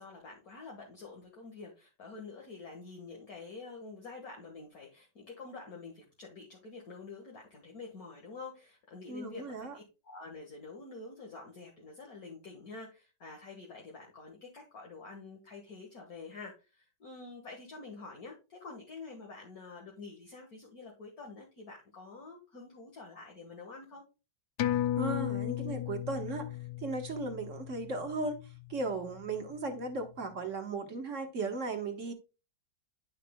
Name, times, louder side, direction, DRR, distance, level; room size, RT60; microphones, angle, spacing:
voice 1, 0.0-24.0, left 4 dB, 50° left, 2.0 m, -47 dB
voice 2, 9.1-9.8 25.0-26.5 26.8-28.4 28.7-32.1, right 3 dB, 45° right, 1.4 m, -36 dB
sound 1, 24.6-29.5 29.9-30.0, left 12 dB, 70° left, 1.0 m, -35 dB
11.0 x 5.9 x 2.2 m
omnidirectional pair, 2.1 m